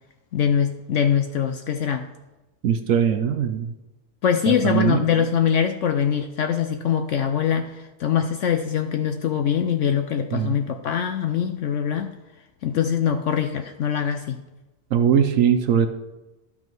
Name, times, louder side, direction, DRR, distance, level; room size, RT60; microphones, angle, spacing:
voice 1, 0.3-2.1 4.2-7.7 8.0-12.1 12.6-14.4, left 8 dB, 65° left, 7 dB, 0.7 m, -23 dB
voice 2, 2.6-3.7 4.5-5.0 10.3-10.6 14.9-15.9, right 8 dB, 65° right, 8 dB, 0.9 m, -20 dB
12.5 x 5.4 x 4.6 m, 1.1 s
omnidirectional pair, 1.7 m